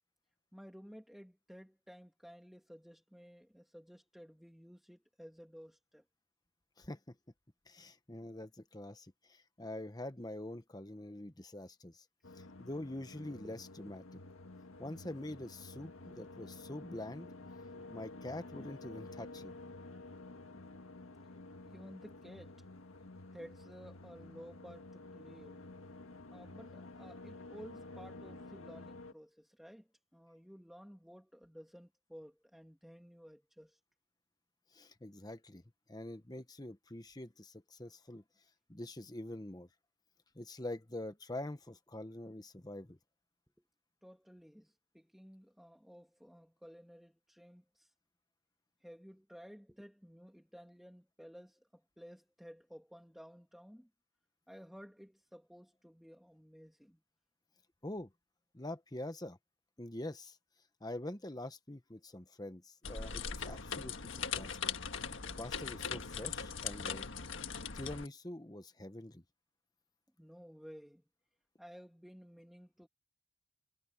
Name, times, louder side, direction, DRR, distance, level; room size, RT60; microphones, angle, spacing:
voice 1, 0.5-6.0 16.1-16.2 17.2-17.4 17.7-17.9 19.1-19.2 21.6-22.6 23.3-25.6 26.3-33.8 43.6-43.7 44.0-47.9 48.8-53.9 54.5-57.0 70.2-71.0 71.6-72.9, equal, ahead, 2.0 m, -55 dB
voice 2, 6.8-7.1 7.7-12.0 12.3-14.0 14.8-17.3 17.9-19.5 34.7-35.6 35.9-38.2 38.7-39.7 40.3-43.0 57.8-58.1 58.5-59.4 59.8-60.4 60.8-64.6 65.4-67.1 67.7-69.2, left 1 dB, 20° left, 1.1 m, -45 dB
sound 1, 12.2-29.1, left 2 dB, 80° left, 1.7 m, -51 dB
sound 2, 62.8-68.1, left 6 dB, 65° left, 1.6 m, -40 dB
head